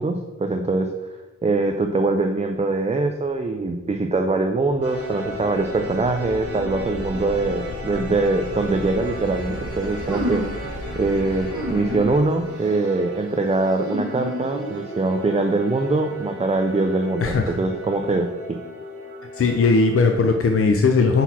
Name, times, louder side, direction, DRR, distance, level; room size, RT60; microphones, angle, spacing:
voice 1, 0.0-18.6, right 3 dB, 20° right, 5 dB, 0.4 m, -23 dB
sound 1, 4.6-12.2, left 2 dB, 75° left, 1.0 m, -36 dB
sound 2, 4.8-20.4, equal, 50° right, 1.3 m, -36 dB
sound 3, 10.1-10.7 11.5-12.2 12.5-13.0 13.8-15.0, equal, 75° right, 1.2 m, -30 dB
voice 2, 17.2-17.6 19.3-21.2, left 4 dB, 45° left, 4 dB, 0.5 m, -18 dB
5.9 x 4.1 x 4.1 m, 1.2 s
wide cardioid pair, 95°, 31 cm